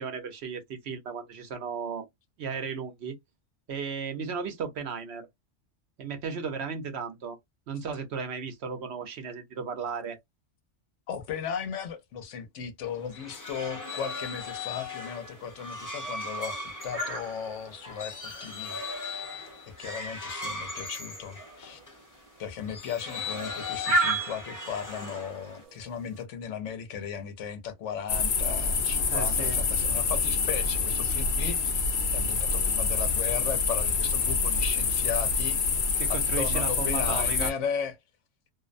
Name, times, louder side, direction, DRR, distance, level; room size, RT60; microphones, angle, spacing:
voice 1, 0.0-2.1 2.4-3.2 3.7-5.3 6.0-7.4 7.7-10.2 29.1-29.6 36.0-37.5, right 6 dB, 65° right, 0.9 m, -35 dB
voice 2, 11.1-18.8 19.0-19.2 19.8-21.8 22.4-31.7 32.1-35.6 36.1-37.9, left 7 dB, 80° left, 1.0 m, -36 dB
sound 1, 12.9-22.0 22.6-25.6, left 2 dB, 20° left, 0.7 m, -38 dB
sound 2, 14.4-26.2, right 2 dB, 40° right, 0.5 m, -37 dB
sound 3, 28.1-37.5, left 4 dB, 55° left, 0.6 m, -26 dB
2.5 x 2.1 x 2.4 m
omnidirectional pair, 1.2 m